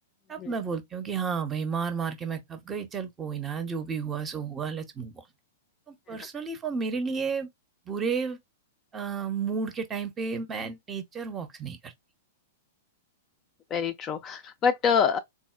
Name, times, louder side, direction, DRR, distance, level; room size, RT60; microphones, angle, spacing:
voice 1, 0.3-5.2 5.9-7.5 7.9-8.4 8.9-11.9, right 5 dB, 20° right, 0.6 m, -32 dB
voice 2, 13.7-15.2, left 6 dB, 25° left, 0.3 m, -26 dB
3.9 x 2.1 x 2.4 m
figure-of-eight pair, 100°, 0 cm